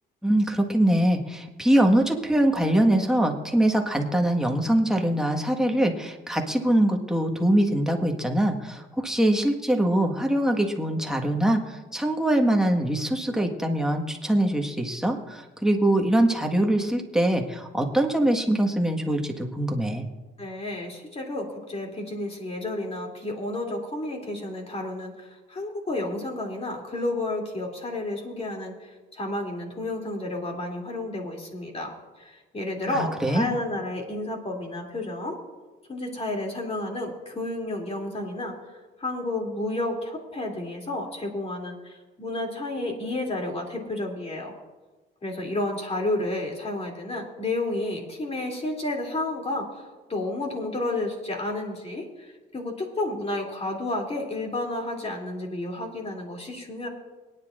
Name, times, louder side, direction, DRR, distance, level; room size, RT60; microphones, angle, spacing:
voice 1, 0.2-20.0 32.9-33.5, right 1 dB, 5° right, 2 dB, 1.5 m, -23 dB
voice 2, 20.4-31.9 32.2-35.4 35.9-38.5 39.0-44.5 45.2-56.9, left 2 dB, 30° left, 1 dB, 2.9 m, -31 dB
23.5 x 10.0 x 2.5 m, 1.2 s
cardioid pair, 90°, 20 cm